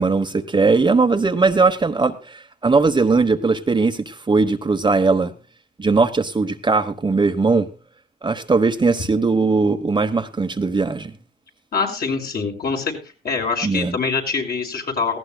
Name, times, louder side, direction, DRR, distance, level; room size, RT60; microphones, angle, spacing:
voice 1, 0.0-5.3 5.8-7.7 8.2-11.1 13.6-14.0, right 4 dB, 25° right, 7 dB, 1.1 m, -19 dB
voice 2, 11.7-12.9 13.2-15.2, left 4 dB, 50° left, 2 dB, 5.4 m, -24 dB
18.5 x 16.5 x 2.3 m, 0.32 s
cardioid pair, 90°, 20 cm